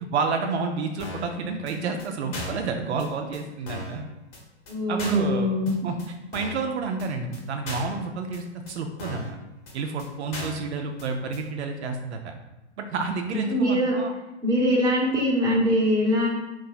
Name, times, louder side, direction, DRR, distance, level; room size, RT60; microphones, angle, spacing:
voice 1, 0.1-4.0 4.9-9.3 9.7-12.3 12.8-14.1, right 4 dB, 70° right, 5 dB, 0.5 m, -30 dB
sound 1, 1.0-1.3 1.7-1.8 2.0-2.1 2.3-2.7 3.0-3.1 3.3-3.4 3.7-4.0 4.3-4.4 4.7-4.8 5.0-5.3 5.7-5.8 6.0-6.1 6.3-6.6 7.0-7.1 7.3-7.4 7.7-8.0 8.3-8.4 8.7-8.8 9.0-9.3 9.7-9.8 10.0-10.1 10.3-10.7 11.0-11.1 11.3-11.4, left 2 dB, 45° left, 1.3 m, -36 dB
voice 2, 4.7-5.7 13.3-14.0 14.4-16.3, equal, 10° right, -5 dB, 0.8 m, -22 dB
2.6 x 2.5 x 3.8 m, 1.0 s
hypercardioid pair, 125°, 35 cm